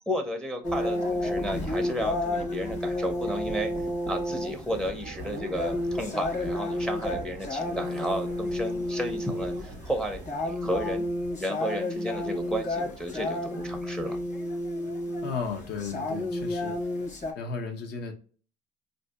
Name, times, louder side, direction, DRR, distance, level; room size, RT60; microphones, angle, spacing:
voice 1, 0.1-11.1 11.4-14.2, equal, 5° left, 0.5 m, -33 dB
sound 1, 0.6-17.3, left 1 dB, 45° left, 1.0 m, -31 dB
sound 2, 4.8-10.4, right 7 dB, 85° right, 0.5 m, -47 dB
voice 2, 15.2-16.9 17.4-18.1, left 5 dB, 75° left, 0.7 m, -34 dB
3.5 x 2.6 x 2.2 m
cardioid pair, 110°, 17 cm